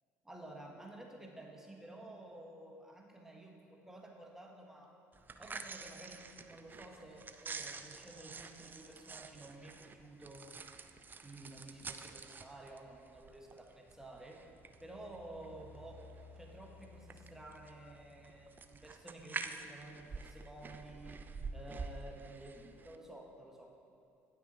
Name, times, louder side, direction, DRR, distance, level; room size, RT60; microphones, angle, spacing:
voice 1, 0.2-4.9 5.4-10.5 11.2-14.4 14.8-16.0 16.3-21.2 21.5-23.7, right 2 dB, 5° right, 0 dB, 1.3 m, -52 dB
sound 1, 5.1-23.0, right 4 dB, 30° right, 0.5 m, -48 dB
sound 2, 14.4-19.0, left 3 dB, 50° right, 1.6 m, -59 dB
9.9 x 6.1 x 4.2 m, 2.4 s
hypercardioid pair, 65°, 7 cm